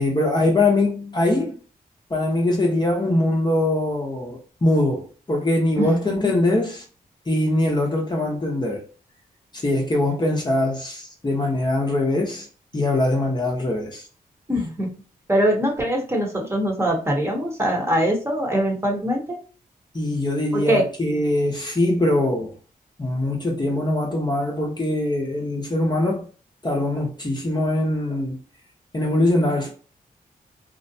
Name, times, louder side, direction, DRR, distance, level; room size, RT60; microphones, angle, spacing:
voice 1, 0.0-1.6 2.1-6.8 7.3-8.9 9.5-12.5 12.7-14.1 19.9-22.5 23.0-26.3 26.6-28.4 28.9-29.7, left 1 dB, 30° left, 0.8 m, -22 dB
voice 2, 14.5-14.9 15.3-19.4 20.5-20.8, equal, 15° right, 0.9 m, -22 dB
2.5 x 2.1 x 2.6 m
cardioid pair, 60°, 16 cm